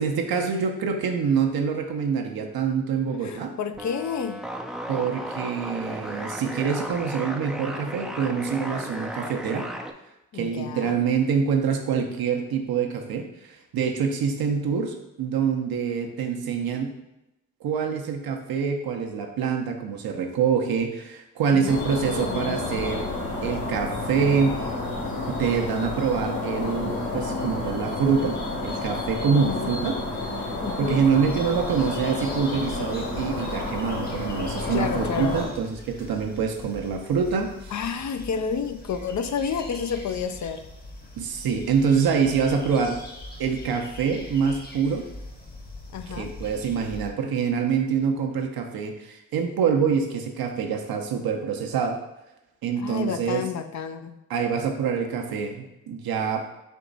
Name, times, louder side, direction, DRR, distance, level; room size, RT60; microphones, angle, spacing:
voice 1, 0.0-3.5 4.9-9.7 10.3-16.9 17.6-23.1 23.4-24.6 25.3-30.0 30.2-30.4 30.8-37.7 41.2-43.0 43.4-45.1 46.1-52.0 52.6-53.4 54.3-56.4, right 6 dB, 70° right, 3 dB, 0.8 m, -25 dB
voice 2, 3.2-4.4 10.3-11.1 21.5-22.9 29.2-29.8 30.6-31.1 34.7-35.4 37.7-40.6 45.9-46.3 52.8-54.2, left 7 dB, 50° left, 8 dB, 0.5 m, -31 dB
sound 1, 3.7-9.9, equal, ahead, 0.4 m, -35 dB
sound 2, 21.7-35.5, left 2 dB, 75° left, 1.6 m, -30 dB
sound 3, 31.3-47.1, left 2 dB, 25° left, 1.0 m, -42 dB
4.5 x 2.9 x 3.9 m, 0.92 s
supercardioid pair, 45°, 38 cm